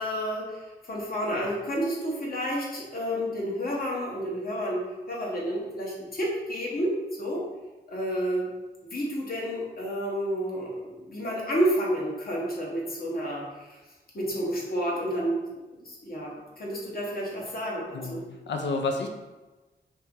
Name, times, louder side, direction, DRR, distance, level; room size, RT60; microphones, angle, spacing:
voice 1, 0.0-7.4 7.9-8.5 8.8-13.8 14.1-15.4 15.7-18.2, equal, 55° left, -4 dB, 1.1 m, -30 dB
voice 2, 17.9-19.1, left 3 dB, 90° left, 3 dB, 0.5 m, -30 dB
2.9 x 2.8 x 3.5 m, 1.1 s
wide cardioid pair, 80°, 18 cm